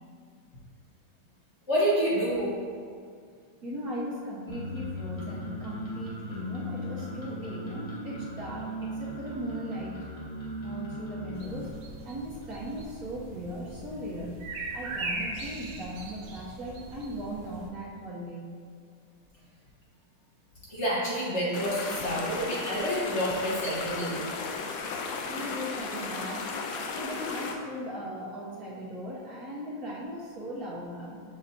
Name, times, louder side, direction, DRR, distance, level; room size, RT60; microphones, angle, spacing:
voice 1, 1.7-2.5 20.7-24.3 24.9-25.0, equal, 40° left, -7 dB, 1.4 m, -28 dB
voice 2, 3.6-10.0 10.6-11.8 12.0-14.5 14.7-18.5 25.3-26.6 26.9-31.2, equal, 55° right, -5 dB, 1.3 m, -38 dB
sound 1, 4.5-11.7, equal, 25° left, 0.9 m, -38 dB
sound 2, 11.3-17.7, right 2 dB, 75° right, 1.5 m, -40 dB
sound 3, 21.5-27.5, left 4 dB, 80° left, 1.3 m, -35 dB
6.9 x 6.2 x 2.7 m, 2.2 s
omnidirectional pair, 2.0 m